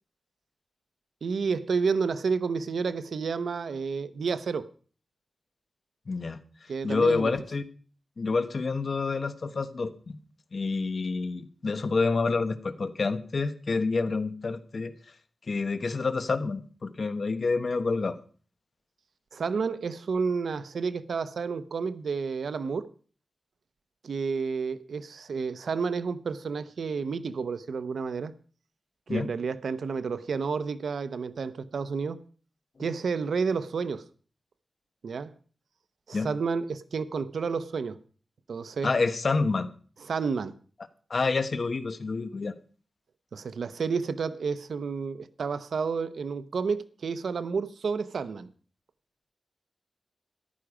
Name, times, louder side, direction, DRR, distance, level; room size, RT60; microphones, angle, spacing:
voice 1, 1.2-4.7 6.7-7.3 19.3-22.9 24.0-28.3 29.1-32.2 32.8-34.1 35.0-35.3 36.1-38.0 38.5-38.9 40.1-40.6 43.3-48.5, right 5 dB, 90° right, 0.8 m, -30 dB
voice 2, 6.1-6.4 6.8-7.7 8.2-10.2 10.5-14.9 15.5-18.2 29.1-29.3 32.8-32.9 36.1-36.3 38.8-39.7 41.1-42.5, left 4 dB, 55° left, 1.1 m, -28 dB
14.0 x 11.5 x 4.9 m
wide cardioid pair, 105°, 0 cm